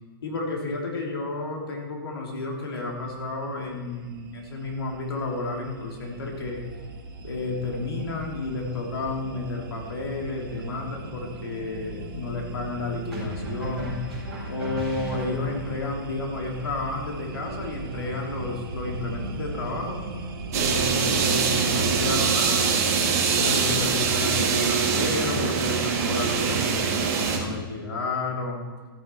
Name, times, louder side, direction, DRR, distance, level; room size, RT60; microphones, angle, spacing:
voice 1, 0.2-6.6 7.2-14.0 14.5-20.0 20.5-22.7 23.3-28.7, left 3 dB, 90° left, 0 dB, 3.3 m, -31 dB
sound 1, 2.8-22.1, right 2 dB, 70° right, 1.9 m, -38 dB
sound 2, 10.5-10.7 13.1-15.8, equal, 5° left, 4.4 m, -36 dB
sound 3, 20.5-27.4, right 5 dB, 40° right, 2.1 m, -23 dB
14.5 x 8.7 x 4.6 m, 1.5 s
hypercardioid pair, 175°, 12 cm